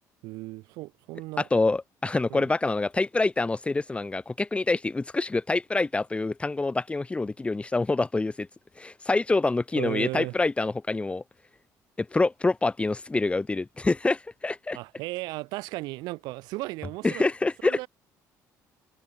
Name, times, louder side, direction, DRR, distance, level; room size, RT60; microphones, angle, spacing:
voice 1, 0.2-1.5 2.3-2.5 9.7-10.3 14.7-17.3 17.6-17.9, right 21 dB, 85° right, 2.2 m, -35 dB
voice 2, 1.4-8.5 8.8-11.2 12.0-14.8 17.0-17.8, left 3 dB, 15° left, 1.7 m, -26 dB
cardioid pair, 100°, 7 cm